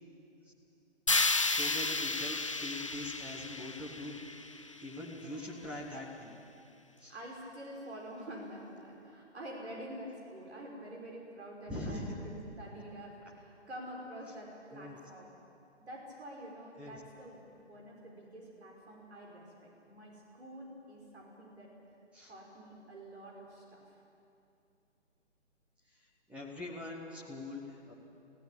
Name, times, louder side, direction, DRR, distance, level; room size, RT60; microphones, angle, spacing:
sound 1, 1.1-5.1, left 3 dB, 30° left, 0.5 m, -33 dB
voice 1, 1.2-4.2 4.8-6.4 7.0-7.1 11.7-12.1 14.7-15.0 16.8-17.0 22.1-22.3 26.3-27.9, left 1 dB, 5° right, -4 dB, 1.1 m, -42 dB
voice 2, 5.0-5.8 7.1-15.3 15.8-21.7 22.2-23.8, right 1 dB, 65° right, -2 dB, 5.6 m, -47 dB
22.0 x 16.0 x 8.5 m, 2.7 s
figure-of-eight pair, 155°, 36 cm